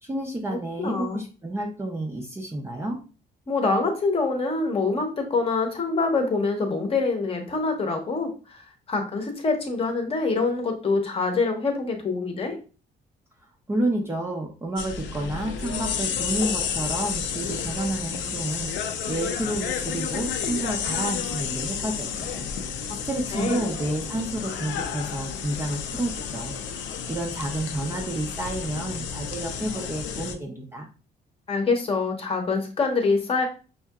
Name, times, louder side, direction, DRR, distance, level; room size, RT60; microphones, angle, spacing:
voice 1, 0.0-3.0 13.7-30.9, right 1 dB, 15° right, 0 dB, 0.4 m, -30 dB
voice 2, 0.8-1.2 3.5-12.6 23.3-23.6 31.5-33.5, left 3 dB, 30° left, 3 dB, 0.8 m, -25 dB
sound 1, 14.8-30.3, left 7 dB, 85° left, 0.5 m, -31 dB
5.5 x 2.7 x 2.3 m, 0.35 s
cardioid pair, 165°, 19 cm